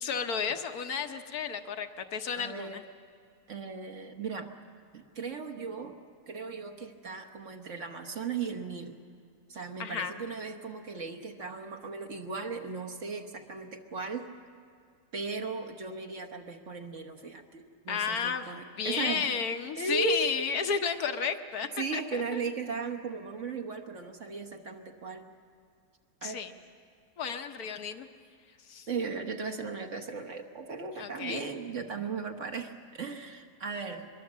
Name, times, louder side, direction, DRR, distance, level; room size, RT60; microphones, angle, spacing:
voice 1, 0.0-2.8 9.8-10.1 17.9-18.5 18.7-22.4 26.2-26.5 27.2-28.1 28.7-28.9 31.0-31.5, left 6 dB, 65° left, 7 dB, 1.5 m, -32 dB
voice 2, 2.3-2.8 3.5-4.5 4.9-5.9 6.3-9.0 9.5-14.4 15.1-19.3 19.8-20.5 21.8-25.3 26.2-26.4 28.9-34.1, right 4 dB, 50° right, 5 dB, 1.5 m, -37 dB
23.0 x 22.5 x 7.4 m, 2.2 s
omnidirectional pair, 1.8 m